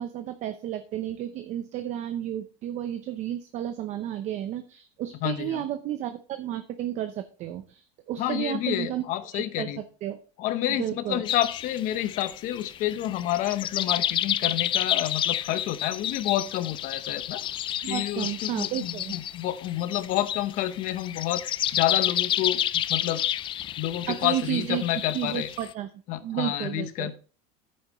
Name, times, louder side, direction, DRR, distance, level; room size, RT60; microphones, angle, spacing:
voice 1, 0.0-9.0 9.3-9.7 10.0-10.2 10.7-11.2 17.8-19.1 24.1-24.8 25.1-25.9 26.2-27.1, right 11 dB, 40° right, 9 dB, 0.7 m, -32 dB
voice 2, 5.2-5.6 8.2-9.8 10.4-17.4 17.9-21.4 21.7-23.2 23.8-25.5 26.1-27.1, left 13 dB, 50° left, 12 dB, 0.9 m, -29 dB
sound 1, 11.2-25.7, left 11 dB, 30° left, 0.4 m, -30 dB
10.5 x 8.7 x 3.1 m, 0.38 s
supercardioid pair, 140°, 18 cm